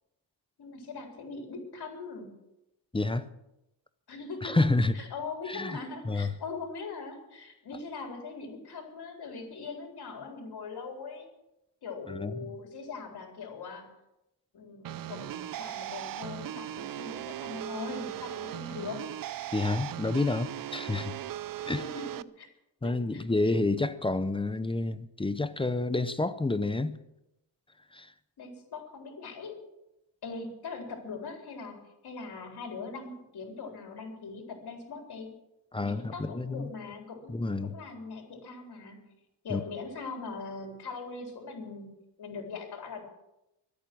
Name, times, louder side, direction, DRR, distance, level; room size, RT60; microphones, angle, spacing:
voice 1, 0.6-2.3 4.1-11.3 11.8-13.9 14.5-19.0 21.8-22.5 22.8-23.5 28.4-29.6 30.2-31.8 32.0-35.3 35.8-39.1 39.4-41.9 42.2-43.0, left 4 dB, 55° left, 3.9 m, -41 dB
voice 2, 2.9-3.3 4.4-4.9 5.5-5.8 6.1-6.3 12.1-12.3 19.5-21.2 21.7-21.8 22.8-27.0 27.9-28.1 35.7-36.7 37.3-37.7 39.5-39.6, left 2 dB, 10° left, 0.6 m, -29 dB
sound 1, 14.8-22.2, right 12 dB, 50° right, 0.5 m, -38 dB
23.5 x 8.7 x 6.1 m
cardioid pair, 135°, 46 cm